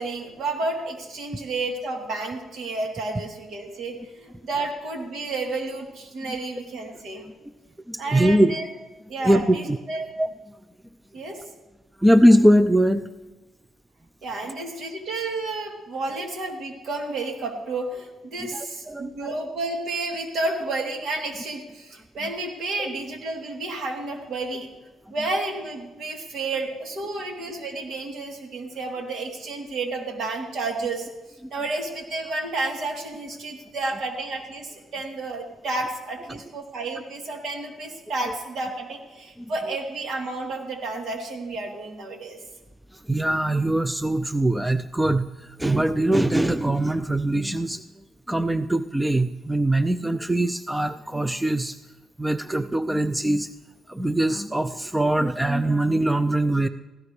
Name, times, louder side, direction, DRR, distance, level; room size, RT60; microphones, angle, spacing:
voice 1, 0.0-7.3 8.0-8.7 9.1-10.1 11.1-11.4 14.2-24.7 25.1-31.1 31.5-42.4, right 2 dB, 65° right, 1 dB, 3.2 m, -31 dB
voice 2, 7.9-8.5 9.2-9.8 10.2-10.3 12.0-13.1 18.4-19.3 22.8-22.9 39.4-39.5 43.1-47.8 48.3-51.8 52.2-53.5 53.9-56.7, right 1 dB, 5° right, 12 dB, 0.5 m, -22 dB
18.0 x 16.0 x 3.3 m, 1.1 s
cardioid pair, 90°, 0 cm